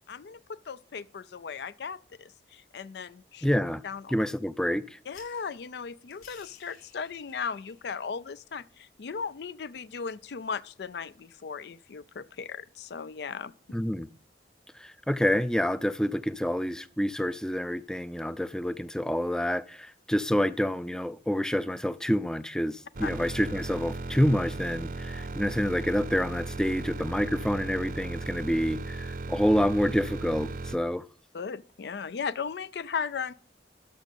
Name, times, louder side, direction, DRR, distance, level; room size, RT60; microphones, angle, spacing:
voice 1, 0.1-3.5 3.8-4.1 5.1-13.5 23.0-23.1 31.3-33.3, left 6 dB, 70° left, 0.4 m, -37 dB
voice 2, 3.4-3.8 4.1-5.0 13.7-14.1 14.7-31.1, equal, 5° left, 0.4 m, -28 dB
sound 1, 5.1-11.2, left 6 dB, 55° left, 4.4 m, -59 dB
sound 2, 22.9-30.8, right 3 dB, 50° right, 0.7 m, -36 dB
12.5 x 6.2 x 5.2 m
head